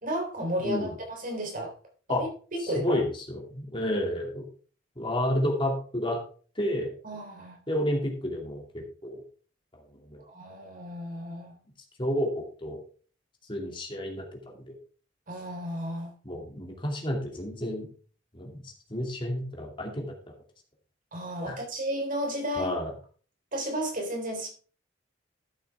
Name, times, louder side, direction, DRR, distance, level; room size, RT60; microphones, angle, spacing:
voice 1, 0.0-1.7 2.1-3.0 7.0-7.6 10.3-11.5 15.3-16.1 21.1-22.8 23.5-24.5, equal, 50° right, 2 dB, 3.5 m, -33 dB
voice 2, 2.7-4.4 5.0-6.2 6.6-6.9 7.7-9.2 10.1-10.2 12.0-12.8 13.5-14.8 16.2-17.9 18.3-20.1 21.4-21.6 22.6-22.9, left 1 dB, 25° left, 1 dB, 2.5 m, -30 dB
13.0 x 8.2 x 3.5 m, 0.40 s
head